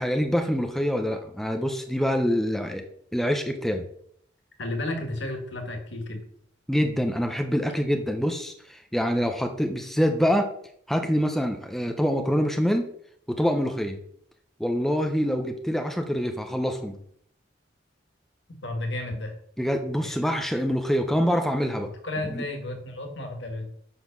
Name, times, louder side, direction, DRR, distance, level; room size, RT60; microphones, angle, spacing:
voice 1, 0.0-2.8 3.1-3.8 6.7-10.5 10.9-12.9 13.3-14.0 14.6-17.0 19.6-21.9 22.3-22.4, equal, ahead, 5 dB, 0.7 m, -25 dB
voice 2, 4.6-6.2 18.6-19.3 20.0-20.2 22.0-23.7, left 1 dB, 70° left, 4 dB, 1.9 m, -32 dB
7.3 x 6.2 x 6.0 m, 0.66 s
head